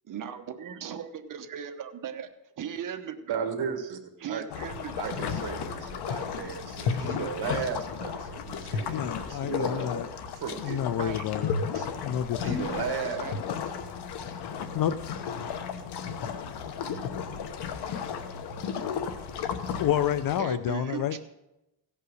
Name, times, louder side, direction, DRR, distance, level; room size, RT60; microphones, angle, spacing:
voice 1, 0.0-2.3 2.6-3.5 4.2-5.2 11.0-11.3 13.1-13.3 20.4-21.2, right 8 dB, 50° right, 7 dB, 1.1 m, -38 dB
voice 2, 3.3-4.0 4.3-4.4 5.0-10.0 10.3-10.9 11.5-11.9 12.4-13.2, right 6 dB, 70° right, 6 dB, 1.7 m, -35 dB
sound 1, 4.5-20.4, left 6 dB, 80° left, 1.1 m, -34 dB
voice 3, 8.9-10.1 10.6-11.5 12.0-12.6 14.7-15.2 19.8-21.2, left 10 dB, 60° left, 13 dB, 0.5 m, -29 dB
16.5 x 5.6 x 6.3 m, 0.94 s
cardioid pair, 120°, 40 cm